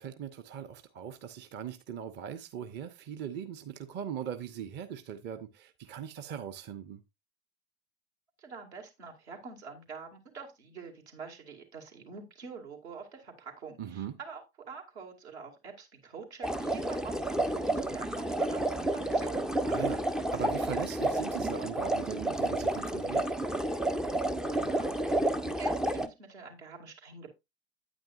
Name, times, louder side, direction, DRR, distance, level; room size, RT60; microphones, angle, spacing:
voice 1, 0.0-7.0 13.8-14.1 19.7-23.3, right 8 dB, 30° right, 0.8 m, -40 dB
voice 2, 8.4-19.5 24.5-27.3, right 5 dB, 75° right, 2.3 m, -46 dB
sound 1, 16.4-26.1, right 1 dB, ahead, 0.3 m, -30 dB
8.9 x 8.9 x 2.5 m
figure-of-eight pair, 75°, 34 cm